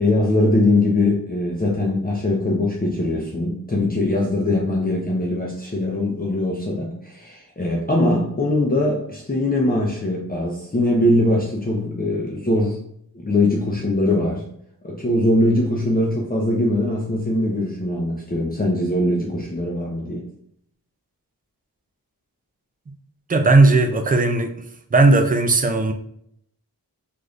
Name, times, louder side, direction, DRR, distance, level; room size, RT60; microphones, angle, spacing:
voice 1, 0.0-12.8 13.1-14.4 14.8-20.2, left 1 dB, 25° left, 0.6 m, -21 dB
voice 2, 23.3-24.6 24.9-25.9, right 2 dB, 25° right, 0.3 m, -16 dB
3.1 x 2.5 x 2.5 m
wide cardioid pair, 45°, 38 cm